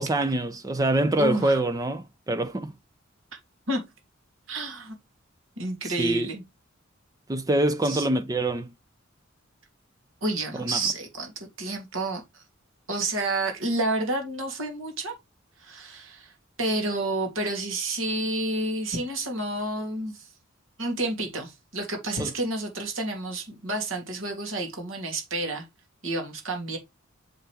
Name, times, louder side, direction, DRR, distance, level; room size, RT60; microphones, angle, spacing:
voice 1, 0.0-2.7 5.8-6.3 7.3-8.7 10.6-10.8 22.2-22.3, right 1 dB, 15° right, 0.4 m, -25 dB
voice 2, 1.2-1.6 3.7-3.8 4.5-4.9 5.6-6.4 7.8-8.1 10.2-11.3 11.6-12.4 12.9-15.1 15.6-16.3 16.6-20.3 20.8-25.7 26.0-26.8, right 2 dB, 75° right, 2.9 m, -29 dB
7.0 x 5.6 x 3.4 m
head